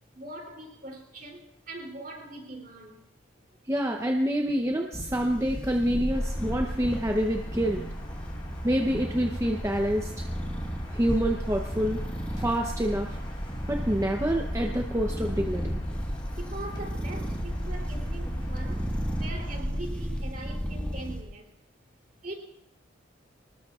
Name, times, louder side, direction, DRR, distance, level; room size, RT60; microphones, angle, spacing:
voice 1, 0.1-3.0 16.3-21.5 22.2-22.3, right 2 dB, 45° right, 1 dB, 3.2 m, -42 dB
voice 2, 3.7-7.8 8.6-10.3 10.9-12.0 12.4-13.2 13.7-15.7, equal, 15° right, 2 dB, 0.8 m, -27 dB
sound 1, 4.9-21.2, equal, 5° left, 1.7 m, -34 dB
sound 2, 6.1-19.6, equal, 25° left, 4.1 m, -41 dB
25.0 x 20.0 x 2.4 m, 0.82 s
head